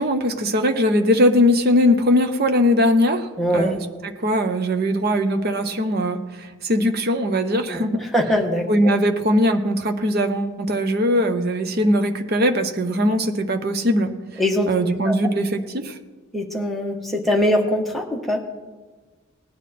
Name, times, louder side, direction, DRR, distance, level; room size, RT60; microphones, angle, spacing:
voice 1, 0.0-3.3 3.5-3.8 4.2-8.0 8.7-14.1 14.7-16.0, equal, 45° right, 7 dB, 0.9 m, -20 dB
voice 2, 3.4-3.8 7.7-8.7 14.4-14.7 15.0-15.2 16.3-18.4, equal, ahead, 0 dB, 1.3 m, -22 dB
18.5 x 10.5 x 4.3 m, 1.4 s
head